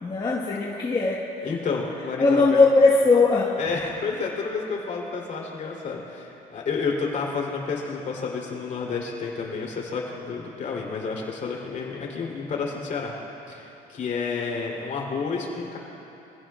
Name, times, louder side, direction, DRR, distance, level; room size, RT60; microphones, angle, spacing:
voice 1, 0.0-1.6 2.2-3.6, left 3 dB, 25° left, -4 dB, 1.6 m, -20 dB
voice 2, 1.4-2.6 3.6-13.1 13.5-15.8, left 5 dB, 50° left, -1 dB, 3.8 m, -30 dB
26.0 x 16.5 x 2.5 m, 2.9 s
cardioid pair, 110°, 17 cm